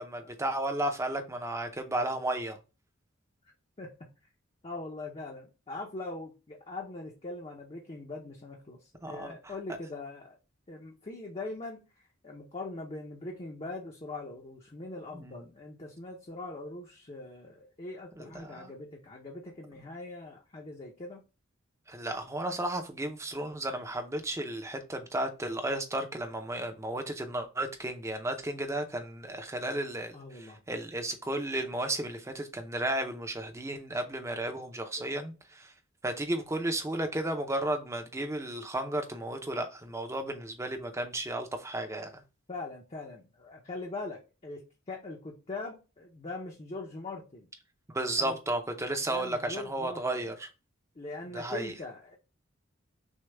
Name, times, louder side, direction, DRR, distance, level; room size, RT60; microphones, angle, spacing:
voice 1, 0.0-2.6 9.0-9.3 15.2-15.3 18.2-18.7 21.9-35.7 36.0-42.2 47.9-50.5 51.3-51.7, right 1 dB, 15° right, 0.6 m, -33 dB
voice 2, 4.6-10.4 10.7-11.8 12.2-21.2 30.1-30.6 35.0-35.1 42.5-47.5 48.2-48.4 49.1-50.2 51.0-52.2, left 2 dB, 30° left, 0.7 m, -41 dB
6.3 x 2.3 x 3.4 m
head